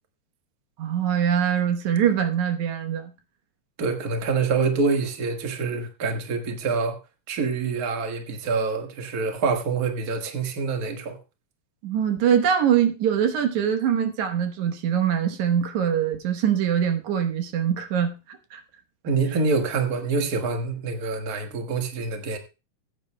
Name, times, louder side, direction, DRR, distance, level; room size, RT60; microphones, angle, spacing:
voice 1, 0.8-3.1 11.8-18.6, right 8 dB, 80° right, 2.5 m, -23 dB
voice 2, 3.8-7.0 7.3-11.2 19.0-22.4, right 4 dB, 40° right, 1.6 m, -26 dB
20.0 x 9.3 x 2.2 m
omnidirectional pair, 3.4 m